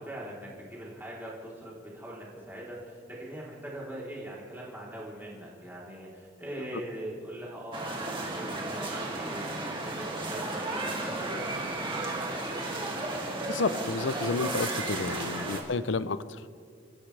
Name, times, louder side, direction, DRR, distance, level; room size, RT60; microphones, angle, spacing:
voice 1, 0.0-11.2, right 1 dB, 10° right, -6 dB, 3.6 m, -41 dB
sound 1, 7.7-15.6, right 2 dB, 25° right, 2.3 m, -33 dB
voice 2, 13.5-16.4, left 3 dB, 70° left, 15 dB, 0.6 m, -31 dB
29.0 x 15.0 x 3.4 m, 2.2 s
head